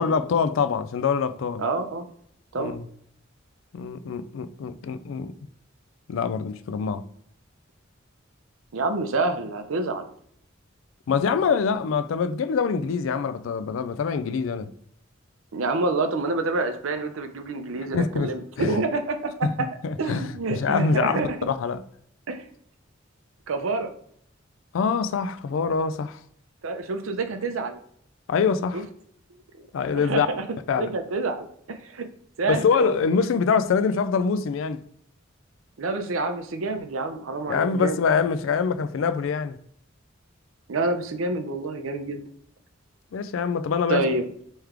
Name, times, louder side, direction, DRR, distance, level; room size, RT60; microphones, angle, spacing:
voice 1, 0.0-1.6 2.6-2.8 3.7-5.3 6.1-7.1 11.1-14.7 17.9-18.8 19.4-19.5 19.8-21.2 21.5-21.8 24.7-26.2 28.3-28.8 29.7-30.3 30.7-30.9 32.5-34.8 37.5-39.6 43.1-44.0, left 5 dB, 75° left, 0.3 m, -24 dB
voice 2, 1.6-2.1 2.5-2.7 8.7-10.1 15.5-19.7 20.0-21.4 22.3-22.5 23.5-23.9 26.6-27.8 28.7-28.8 29.9-30.4 30.8-32.1 32.4-33.0 35.8-38.0 40.7-42.2 43.9-44.3, right 3 dB, 85° right, 0.6 m, -27 dB
3.3 x 3.1 x 3.6 m
head